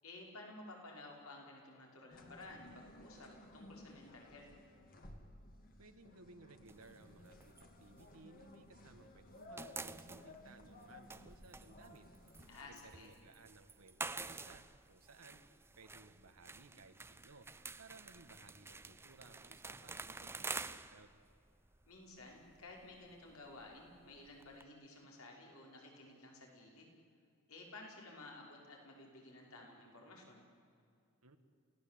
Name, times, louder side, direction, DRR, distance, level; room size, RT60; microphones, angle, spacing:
voice 1, 0.0-4.5 12.5-13.1 21.9-26.9 27.5-30.4, left 2 dB, 75° left, 0 dB, 5.9 m, -54 dB
sound 1, 2.1-12.7, left 1 dB, 40° left, 2.3 m, -58 dB
voice 2, 5.8-7.5 7.8-12.1 12.6-15.4 15.7-17.5 17.8-21.1 31.2-31.4, right 3 dB, 80° right, 6 dB, 1.6 m, -60 dB
sound 2, 6.7-8.9 9.2-24.6, right 3 dB, 10° right, 0.6 m, -49 dB
28.5 x 17.5 x 8.7 m, 2.4 s
head